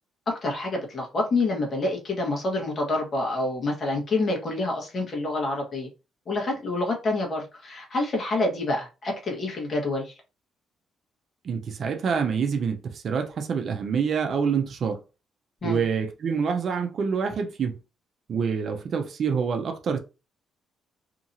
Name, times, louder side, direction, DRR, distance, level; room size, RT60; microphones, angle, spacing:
voice 1, 0.3-5.9 6.3-10.1 15.6-15.8, left 2 dB, 45° left, 1.2 m, -27 dB
voice 2, 11.4-15.0 15.6-17.8 18.3-20.0, right 6 dB, 55° right, 0.6 m, -26 dB
2.9 x 2.7 x 2.6 m
cardioid pair, 90°, 0 cm